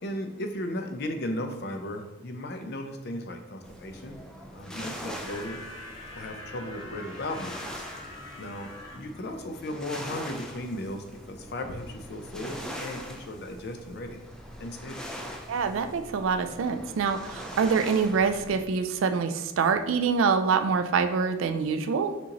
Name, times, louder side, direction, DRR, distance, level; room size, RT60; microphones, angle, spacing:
voice 1, 0.0-4.2 4.5-5.6 6.1-7.9 8.4-14.2 14.6-15.1, left 1 dB, 50° left, 5 dB, 0.5 m, -36 dB
sound 1, 3.6-18.6, equal, 5° left, 0.4 m, -42 dB
sound 2, 5.2-9.0, left 2 dB, 85° left, 1.2 m, -44 dB
voice 2, 15.5-22.1, right 5 dB, 75° right, 8 dB, 0.4 m, -25 dB
6.0 x 2.9 x 2.9 m, 1.1 s
head